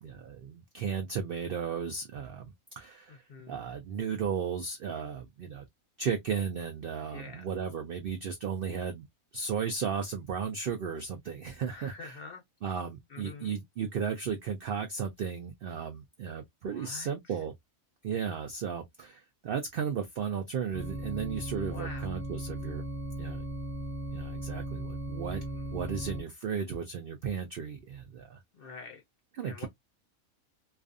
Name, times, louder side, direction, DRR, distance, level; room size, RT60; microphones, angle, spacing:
voice 1, 0.0-3.2 3.5-5.7 6.0-9.0 9.3-12.2 12.6-17.5 18.0-22.8 23.2-23.4 24.1-25.4 25.7-28.4 29.4-29.7, right 6 dB, 85° right, 0.4 m, -35 dB
voice 2, 3.1-3.6 7.1-7.4 11.7-12.4 13.1-13.6 16.7-17.4 21.7-22.1 25.4-25.7 28.5-29.0 29.4-29.7, left 4 dB, 60° left, 0.6 m, -46 dB
sound 1, 20.7-26.2, right 1 dB, 15° right, 0.4 m, -37 dB
2.5 x 2.4 x 2.4 m
omnidirectional pair, 1.5 m